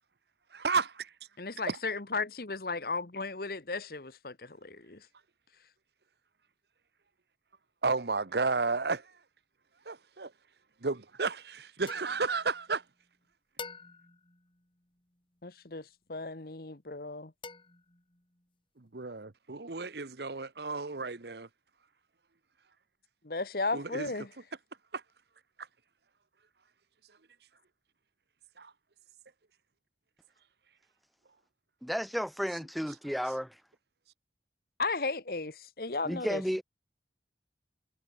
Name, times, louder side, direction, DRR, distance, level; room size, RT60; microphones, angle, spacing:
voice 1, 0.5-1.1 1.7-1.8 7.8-9.1 9.9-10.3 10.8-12.8 18.9-21.5 23.7-24.1 24.9-25.0 28.6-28.7, right 4 dB, 65° right, 1.1 m, -32 dB
voice 2, 1.4-5.1 15.4-17.3 23.2-24.3 34.8-36.4, left 3 dB, 55° left, 1.3 m, -35 dB
sound 1, 11.9-13.1 13.6-15.4 17.4-18.5, left 4 dB, 30° left, 4.3 m, -49 dB
voice 3, 31.8-33.6 36.0-36.6, equal, ahead, 1.5 m, -33 dB
head